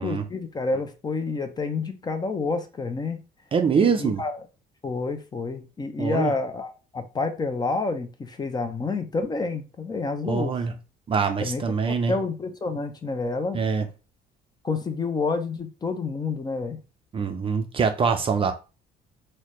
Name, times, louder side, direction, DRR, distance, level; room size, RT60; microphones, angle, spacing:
voice 1, 0.0-3.2 3.7-4.4 4.8-10.6 11.4-13.6 14.6-16.8, left 3 dB, 25° left, 0.6 m, -29 dB
voice 2, 3.5-4.2 6.0-6.3 10.2-10.7 11.1-12.1 13.5-13.8 17.1-18.5, right 5 dB, 30° right, 0.5 m, -24 dB
4.0 x 2.2 x 3.1 m
cardioid pair, 110°, 17 cm